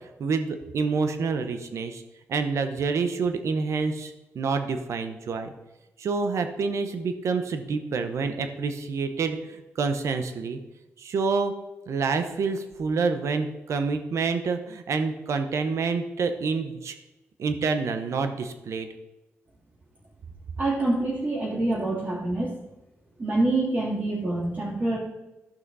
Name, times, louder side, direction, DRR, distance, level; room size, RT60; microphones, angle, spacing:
voice 1, 0.2-2.0 2.3-5.5 6.0-10.6 11.0-11.5 11.9-16.9 17.4-18.9, right 4 dB, 75° right, 7 dB, 1.0 m, -27 dB
voice 2, 20.6-22.5 23.2-25.0, right 2 dB, 35° right, -9 dB, 3.2 m, -26 dB
13.5 x 5.8 x 4.1 m, 1.0 s
wide cardioid pair, 115°, 5 cm